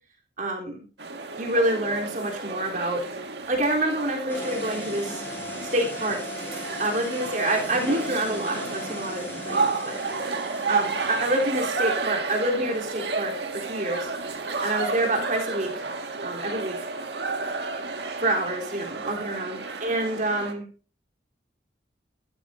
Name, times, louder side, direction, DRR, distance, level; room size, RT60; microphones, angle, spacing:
voice 1, 0.4-0.8 1.4-3.0 3.5-5.3 5.7-6.2 6.8-10.0 10.7-14.1 14.6-15.9 16.2-16.8 18.2-20.7, right 1 dB, 45° right, 0 dB, 3.6 m, -27 dB
sound 1, 1.0-20.5, right 4 dB, 70° right, 1.8 m, -32 dB
sound 2, 4.3-11.7, left 1 dB, 10° left, 4.5 m, -37 dB
13.5 x 13.0 x 2.7 m, 0.34 s
head